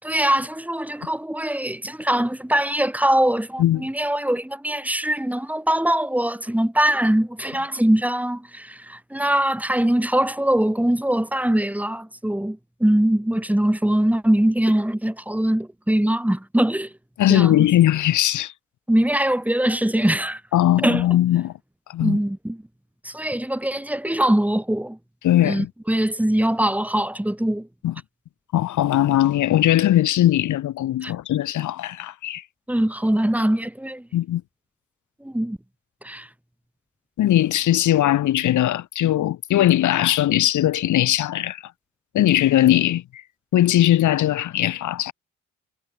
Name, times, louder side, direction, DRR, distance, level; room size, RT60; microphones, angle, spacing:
voice 1, 0.0-16.9 17.3-17.7 18.9-20.4 20.8-21.0 22.0-22.6 23.0-25.0 25.4-27.7 31.0-31.1 32.7-34.1 35.2-35.6 36.0-36.3, right 1 dB, 5° right, 8.0 m, -22 dB
voice 2, 17.2-18.5 20.5-21.5 21.9-22.2 25.2-25.7 27.8-27.9 28.5-32.4 34.1-34.4 37.2-41.6 42.1-43.2 43.5-45.1, left 13 dB, 75° left, 2.7 m, -19 dB
cardioid pair, 90°, 30 cm